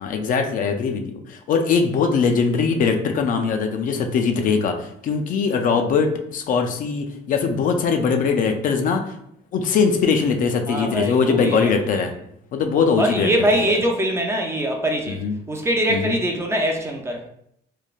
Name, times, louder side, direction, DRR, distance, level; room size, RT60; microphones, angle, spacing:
voice 1, 0.0-9.0 9.5-12.1 12.5-13.7 15.1-15.3 15.9-16.2, left 5 dB, 55° left, 5 dB, 0.4 m, -21 dB
voice 2, 10.7-12.0 13.0-17.2, right 1 dB, 15° right, 2 dB, 0.4 m, -23 dB
3.1 x 2.1 x 2.3 m, 0.72 s
cardioid pair, 110°, 17 cm